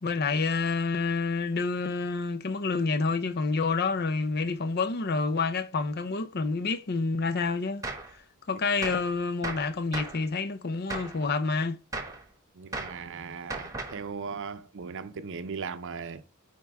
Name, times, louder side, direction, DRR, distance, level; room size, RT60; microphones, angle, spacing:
voice 1, 0.0-7.9 8.5-11.8, left 4 dB, 45° left, 0.6 m, -28 dB
Gunshot gunfire, 7.8-8.1 8.8-9.1 9.4-10.2 10.9-11.2 11.9-12.2 12.7-13.0 13.5-14.0, right 3 dB, 15° right, 1.3 m, -36 dB
voice 2, 12.5-16.2, right 5 dB, 60° right, 0.6 m, -38 dB
9.2 x 4.4 x 3.5 m
head